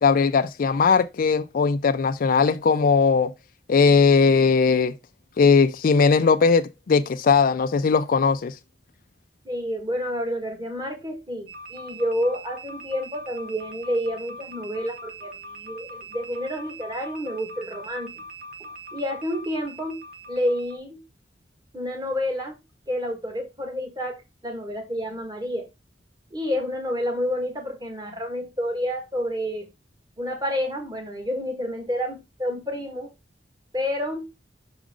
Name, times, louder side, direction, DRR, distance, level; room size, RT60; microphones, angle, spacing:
voice 1, 0.0-3.3 3.7-4.9 5.4-8.6, left 5 dB, 50° left, 0.4 m, -19 dB
voice 2, 9.4-18.2 18.9-20.0 20.3-21.0 21.7-22.6 22.9-25.7 26.3-29.7 30.2-33.1 33.7-34.3, equal, 25° right, 1.8 m, -29 dB
sound 1, 11.5-20.8, right 1 dB, 55° right, 1.3 m, -41 dB
6.2 x 4.9 x 3.7 m
head